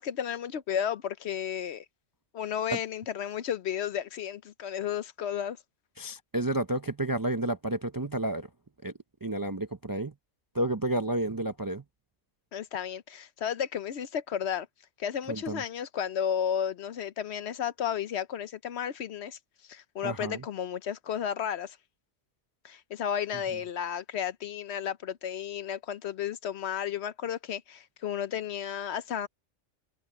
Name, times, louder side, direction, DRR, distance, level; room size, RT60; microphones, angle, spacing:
voice 1, 0.0-1.9 2.3-5.6 12.5-14.7 15.0-21.8 22.6-29.3, left 9 dB, 65° left, 0.9 m, -33 dB
voice 2, 6.0-8.5 8.8-8.9 9.2-10.1 10.5-11.8 15.3-15.6 20.0-20.4, right 1 dB, 25° right, 0.5 m, -31 dB
omnidirectional pair, 1.2 m